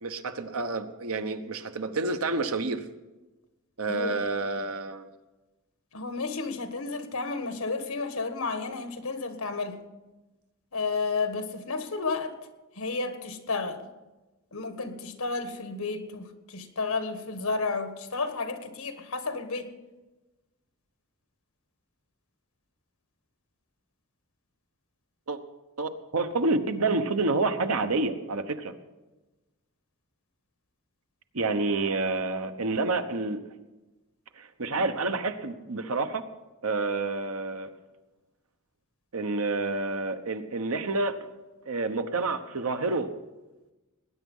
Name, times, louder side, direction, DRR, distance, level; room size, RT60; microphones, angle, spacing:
voice 1, 0.0-2.8 3.8-5.1 25.3-25.4 25.8-28.7 31.3-33.4 34.4-36.2 36.6-37.7 39.1-41.2 41.7-43.1, right 3 dB, 90° right, 8 dB, 1.1 m, -28 dB
voice 2, 5.9-9.8 10.7-12.3 12.7-13.8 14.5-19.7, left 4 dB, 80° left, 8 dB, 1.6 m, -32 dB
19.5 x 9.6 x 5.5 m, 1.1 s
head